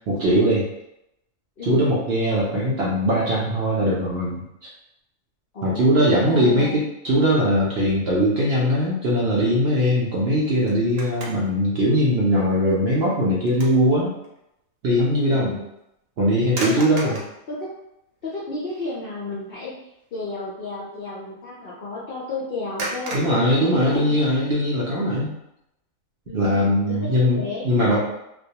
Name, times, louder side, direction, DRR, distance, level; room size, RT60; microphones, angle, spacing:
voice 1, 0.1-0.7 1.6-4.5 5.6-14.1 14.8-15.5 16.2-17.2 23.1-25.3 26.3-28.0, equal, 65° right, -6 dB, 0.6 m, -20 dB
voice 2, 1.6-1.9 5.5-6.8 15.3-15.7 16.6-17.1 17.5-17.7 18.2-19.7 20.1-23.2 23.6-24.3 24.7-25.1 26.3-27.7, left 3 dB, 65° left, -7 dB, 0.5 m, -32 dB
sound 1, 10.5-11.6 12.1-12.3 12.8-13.9 14.2-14.4 16.4-17.4 18.2-18.3 18.7-19.0 19.3-19.5 22.8-24.4, right 2 dB, 80° right, 1.0 m, -34 dB
2.3 x 2.1 x 2.7 m, 0.83 s
omnidirectional pair, 1.5 m